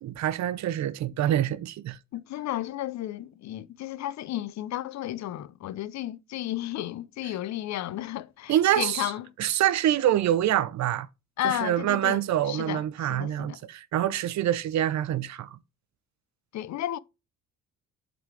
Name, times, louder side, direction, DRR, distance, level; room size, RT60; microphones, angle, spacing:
voice 1, 0.0-2.0 8.5-9.1 9.4-11.1 11.4-15.6, right 12 dB, 65° right, 0.6 m, -26 dB
voice 2, 2.1-9.3 11.4-12.2 12.5-13.6 16.5-17.0, left 13 dB, 65° left, 0.5 m, -33 dB
8.0 x 4.0 x 4.6 m
cardioid pair, 90°, 30 cm